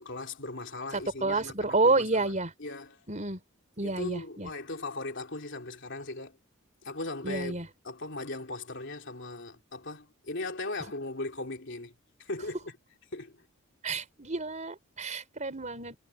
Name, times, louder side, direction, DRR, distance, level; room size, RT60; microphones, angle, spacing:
voice 1, 0.0-2.3 2.6-3.0 3.8-6.4 6.8-11.9 12.2-12.8 13.1-13.4, left 2 dB, 60° left, 3.1 m, -38 dB
voice 2, 0.9-2.5 3.1-3.4 3.8-4.5 7.2-7.7 13.8-15.9, right 3 dB, 35° right, 4.6 m, -29 dB
head